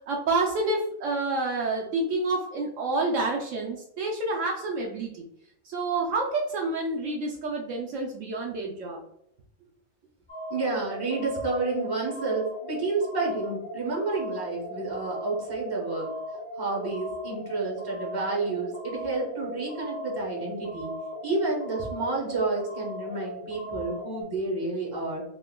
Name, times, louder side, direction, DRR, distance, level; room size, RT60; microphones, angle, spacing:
voice 1, 0.1-5.2 5.7-9.0, right 2 dB, 70° right, 1 dB, 0.9 m, -28 dB
sound 1, 10.3-24.2, equal, 40° left, 1.3 m, -38 dB
voice 2, 10.5-16.1 16.6-20.9 21.2-25.2, right 3 dB, 20° right, -3 dB, 0.8 m, -30 dB
3.6 x 2.8 x 2.2 m, 0.75 s
omnidirectional pair, 1.5 m